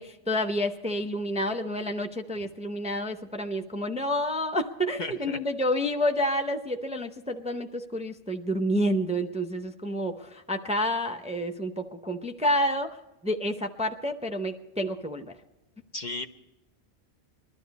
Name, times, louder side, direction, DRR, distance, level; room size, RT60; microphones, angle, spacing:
voice 1, 0.0-13.0 13.2-15.3, equal, 5° right, 6 dB, 0.6 m, -29 dB
voice 2, 5.0-5.4 15.9-16.3, left 2 dB, 50° left, 6 dB, 0.8 m, -34 dB
21.0 x 12.5 x 4.1 m, 0.99 s
omnidirectional pair, 1.1 m